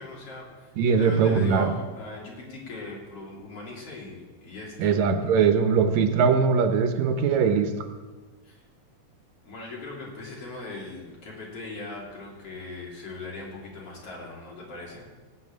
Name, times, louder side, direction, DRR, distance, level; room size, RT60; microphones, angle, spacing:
voice 1, 0.0-5.0 8.4-8.6 9.4-15.1, left 3 dB, 50° left, -3 dB, 4.1 m, -39 dB
voice 2, 0.8-1.7 4.8-7.7, right 6 dB, 75° right, 8 dB, 2.2 m, -21 dB
17.0 x 5.8 x 8.6 m, 1.3 s
omnidirectional pair, 3.4 m